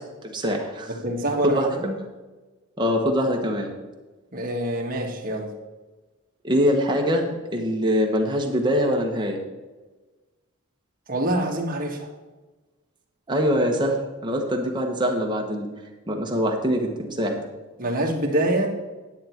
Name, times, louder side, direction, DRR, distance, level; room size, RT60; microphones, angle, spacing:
voice 1, 0.2-0.9 1.4-1.8 2.8-3.7 6.4-9.4 13.3-15.7 16.1-17.4, equal, 20° right, 1 dB, 1.3 m, -23 dB
voice 2, 1.0-1.9 4.3-5.5 11.1-12.1 17.8-18.7, right 1 dB, 40° right, -1 dB, 1.7 m, -25 dB
10.5 x 8.3 x 4.5 m, 1.2 s
head